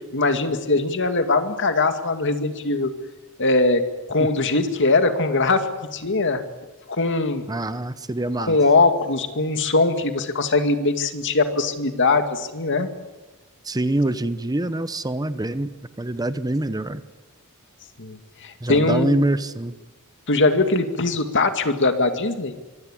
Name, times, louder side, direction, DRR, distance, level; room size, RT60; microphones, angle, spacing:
voice 1, 0.0-2.9 3.4-3.8 4.1-6.4 6.9-7.4 8.5-12.9 18.0-19.2 20.3-22.5, left 3 dB, 55° left, 8 dB, 2.2 m, -21 dB
voice 2, 7.5-8.6 13.6-15.7 16.0-17.0 18.6-19.7, right 1 dB, 15° right, 13 dB, 0.8 m, -25 dB
25.0 x 16.5 x 10.0 m, 1.1 s
head